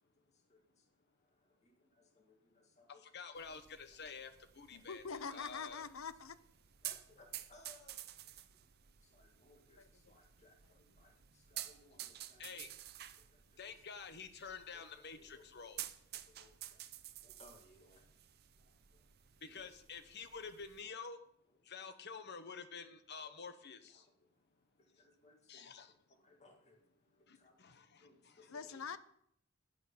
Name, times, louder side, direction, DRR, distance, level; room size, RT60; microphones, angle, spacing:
voice 1, 0.3-3.1 3.9-4.0 4.7-4.8 5.4-5.6 6.8-8.1 8.8-12.6 13.0-13.8 15.0-15.4 16.1-16.9 17.2-18.1 18.6-19.0 19.5-19.7 20.2-20.5 23.2-23.3 23.9-25.7 26.1-29.0, left 2 dB, 35° left, 2 dB, 2.0 m, -66 dB
voice 2, 3.0-5.8 12.4-12.7 13.6-15.8 19.4-21.2 21.7-24.0 25.5-25.9 27.3-28.4 28.7-28.9, left 5 dB, 55° left, 10 dB, 1.1 m, -49 dB
sound 1, 3.4-20.8, right 12 dB, 50° right, 0.7 m, -52 dB
voice 3, 4.7-6.4 28.5-29.0, left 5 dB, 80° left, 14 dB, 0.7 m, -44 dB
10.5 x 9.1 x 5.7 m, 0.70 s
head